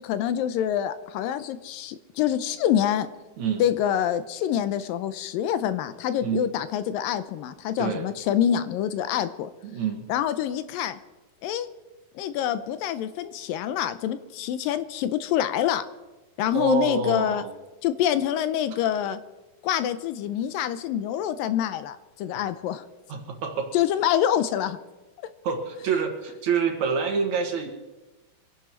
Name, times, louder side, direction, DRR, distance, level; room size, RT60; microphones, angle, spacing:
voice 1, 0.0-3.1 3.6-9.5 10.1-11.0 11.4-11.7 12.1-15.8 16.4-17.4 17.8-19.2 19.6-22.9 23.7-24.8, left 10 dB, 85° left, 12 dB, 2.4 m, -26 dB
voice 2, 9.6-10.1 16.5-17.5 23.1-23.8 25.4-27.7, right 6 dB, 60° right, 4 dB, 2.5 m, -27 dB
25.0 x 11.0 x 4.6 m, 1.1 s
omnidirectional pair, 4.1 m